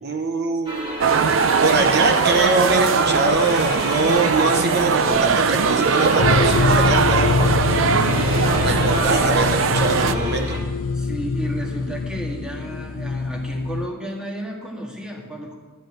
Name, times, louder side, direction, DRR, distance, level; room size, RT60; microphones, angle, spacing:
voice 1, 0.0-1.0 1.6-7.7 8.5-10.6, right 2 dB, 55° right, 4 dB, 0.9 m, -23 dB
sound 1, 0.7-10.6, equal, 25° right, 2.0 m, -30 dB
sound 2, 1.0-10.1, right 6 dB, 75° right, 0.5 m, -20 dB
sound 3, 6.2-13.9, left 4 dB, 85° left, 0.4 m, -24 dB
voice 2, 10.9-15.5, right 1 dB, 5° right, -2 dB, 1.8 m, -32 dB
12.5 x 5.3 x 9.0 m, 1.4 s
head